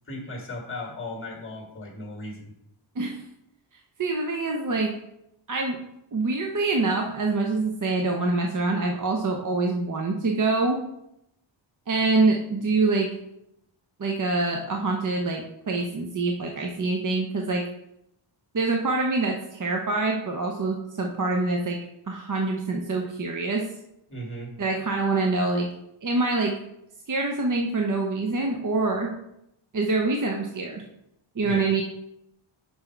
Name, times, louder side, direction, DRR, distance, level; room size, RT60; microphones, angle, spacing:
voice 1, 0.1-2.5 24.1-24.5 31.4-31.7, left 1 dB, 25° left, 1 dB, 1.9 m, -36 dB
voice 2, 4.0-4.9 5.5-5.8 6.1-10.8 11.9-13.1 14.0-17.6 18.5-21.8 22.1-23.7 24.6-25.7 26.0-26.5 27.1-29.1 29.7-30.8 31.4-31.8, right 3 dB, 40° right, 1 dB, 0.7 m, -25 dB
5.9 x 5.6 x 4.5 m, 0.81 s
wide cardioid pair, 130°, 47 cm